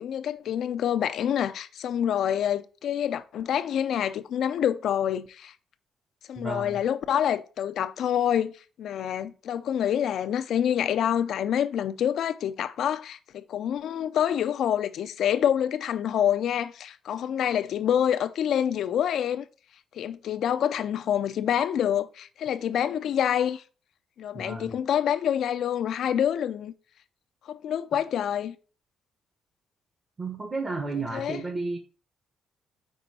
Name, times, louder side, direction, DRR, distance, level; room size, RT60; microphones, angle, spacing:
voice 1, 0.0-5.5 6.3-8.5 8.8-19.5 19.9-23.6 24.2-26.7 27.5-28.6 31.1-31.4, left 9 dB, 70° left, 0.5 m, -27 dB
voice 2, 6.4-6.8 24.3-24.8 27.9-28.0 30.2-31.8, right 3 dB, 30° right, 1.1 m, -33 dB
5.4 x 4.5 x 4.3 m
cardioid pair, 90°, 0 cm